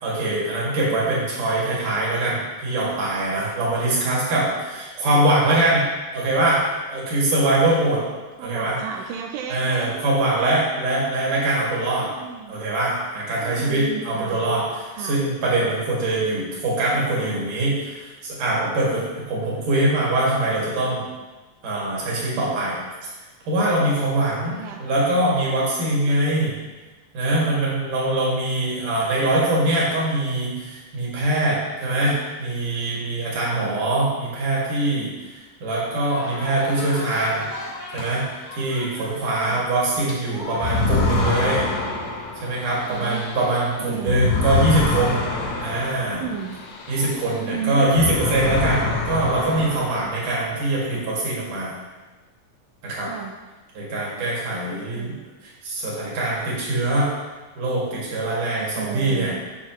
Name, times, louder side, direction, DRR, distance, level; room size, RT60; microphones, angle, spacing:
voice 1, 0.0-5.9 6.1-6.6 6.9-8.0 8.4-8.8 9.5-12.1 12.5-21.0 21.6-22.8 23.5-24.5 24.8-26.6 27.1-37.5 37.9-38.2 38.6-41.7 42.4-45.3 45.6-46.2 46.9-51.7 52.8-53.1 53.7-55.2 55.4-57.1 57.6-59.3, right 2 dB, 65° right, -6 dB, 3.5 m, -23 dB
voice 2, 5.0-5.3 8.4-10.6 12.0-12.6 13.3-14.5 14.9-15.2 24.4-24.8 33.4-33.9 39.4-39.7 42.9-43.2 43.8-44.2 46.1-46.6 47.3-47.8 53.1-53.3 54.7-55.3 58.6-59.4, right 8 dB, 90° right, 1 dB, 2.3 m, -34 dB
sound 1, 36.0-44.6, left 1 dB, 50° left, 2.4 m, -38 dB
sound 2, 40.5-47.5 47.8-50.5, left 3 dB, 80° left, 1.4 m, -26 dB
8.6 x 6.4 x 3.0 m, 1.2 s
omnidirectional pair, 4.0 m